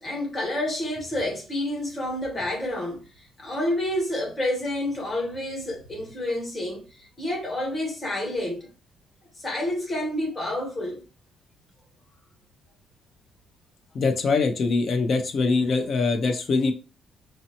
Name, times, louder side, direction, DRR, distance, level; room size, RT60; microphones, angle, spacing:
voice 1, 0.0-3.0 3.4-8.7 9.4-11.0, left 1 dB, 25° left, 1.3 m, -29 dB
voice 2, 13.9-16.7, left 4 dB, 50° left, 0.5 m, -23 dB
2.7 x 2.0 x 2.8 m
cardioid pair, 125°, 0 cm